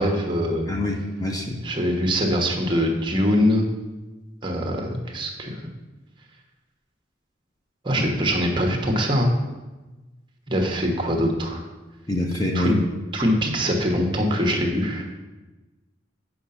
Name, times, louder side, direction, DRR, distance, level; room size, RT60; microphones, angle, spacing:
voice 1, 0.0-0.7 1.6-3.7 4.4-5.6 7.8-9.3 10.5-11.6 12.5-12.8 13.1-15.0, equal, 25° right, 2 dB, 1.2 m, -23 dB
voice 2, 0.7-1.7 8.0-8.1 12.1-12.8, left 1 dB, 20° left, 1 dB, 0.8 m, -26 dB
8.3 x 5.8 x 5.7 m, 1.2 s
head